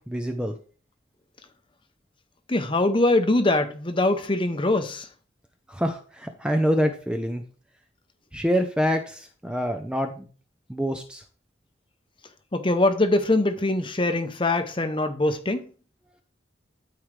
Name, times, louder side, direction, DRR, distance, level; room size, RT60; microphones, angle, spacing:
voice 1, 0.1-0.5 5.7-7.4 8.3-10.3 10.7-11.2, equal, 5° right, 0.6 m, -26 dB
voice 2, 2.5-5.1 12.5-15.6, left 2 dB, 25° left, 0.8 m, -23 dB
12.5 x 4.7 x 3.3 m
head